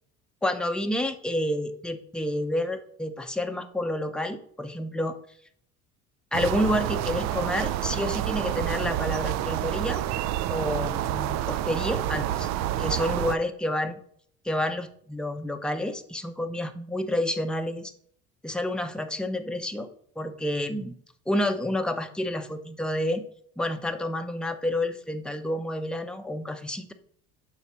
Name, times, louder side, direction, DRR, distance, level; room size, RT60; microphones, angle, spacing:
voice 1, 0.4-5.2 6.3-10.0 10.5-12.5 12.8-14.0 14.4-17.9 18.4-19.9 20.2-21.0 21.3-23.2 23.6-26.9, left 1 dB, 5° left, 6 dB, 0.7 m, -29 dB
sound 1, 6.3-13.4, right 13 dB, 60° right, 0.4 m, -28 dB
5.6 x 4.1 x 6.1 m, 0.63 s
supercardioid pair, 90°, 31 cm